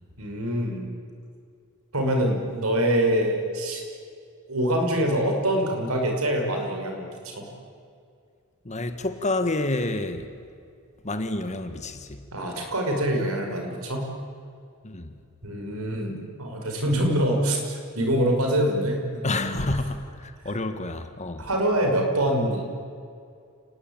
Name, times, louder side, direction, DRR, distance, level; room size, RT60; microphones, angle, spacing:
voice 1, 0.2-0.8 1.9-3.8 4.5-7.5 12.3-14.1 15.4-19.6 20.4-20.5 21.4-22.6, right 1 dB, 75° right, 5.8 m, -25 dB
voice 2, 8.6-10.3 11.0-12.2 14.8-15.1 19.2-21.5, left 2 dB, 30° left, 1.7 m, -29 dB
30.0 x 19.5 x 9.1 m
head